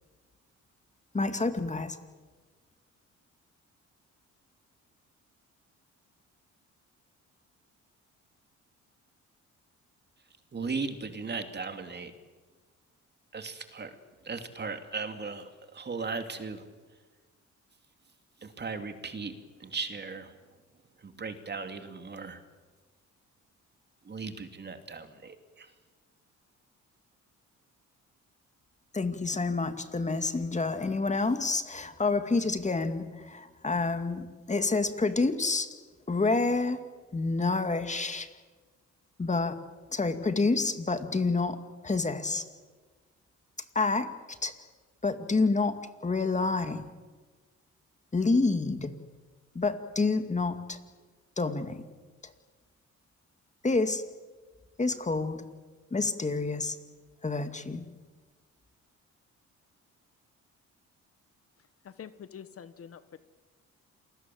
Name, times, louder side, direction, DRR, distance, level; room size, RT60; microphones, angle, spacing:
voice 1, 1.1-2.0 28.9-35.7 36.1-36.8 37.1-38.3 39.2-39.6 39.9-41.6 41.8-42.4 43.7-44.5 45.0-46.8 48.1-48.9 49.5-50.8 51.4-51.8 52.2-52.3 53.6-54.0 54.8-55.5 55.9-56.8 57.2-57.8, left 3 dB, 25° left, 9 dB, 2.3 m, -28 dB
voice 2, 10.5-12.1 13.3-13.9 14.2-16.6 18.4-20.3 21.0-22.4 24.0-25.7, right 4 dB, 35° right, 7 dB, 2.9 m, -37 dB
voice 3, 61.8-63.2, left 8 dB, 50° left, 13 dB, 1.3 m, -46 dB
28.0 x 21.0 x 7.9 m, 1.4 s
cardioid pair, 90°, 30 cm